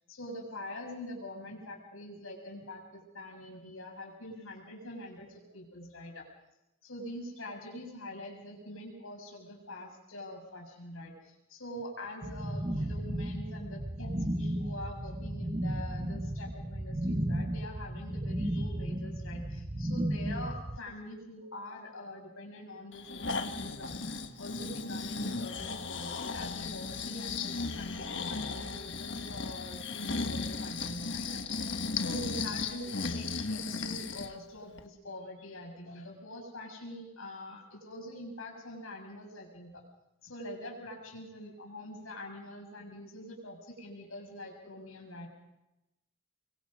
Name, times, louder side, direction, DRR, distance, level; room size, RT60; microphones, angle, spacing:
voice 1, 0.1-6.2 6.8-23.9 24.4-39.8 40.2-45.3, left 1 dB, 85° left, 1 dB, 6.9 m, -44 dB
sound 1, 12.2-20.8, right 1 dB, 20° right, 0.8 m, -34 dB
Breathing, 22.9-34.3 34.8-34.9, left 4 dB, 60° left, 1.5 m, -36 dB
25.5 x 23.0 x 5.4 m, 0.92 s
head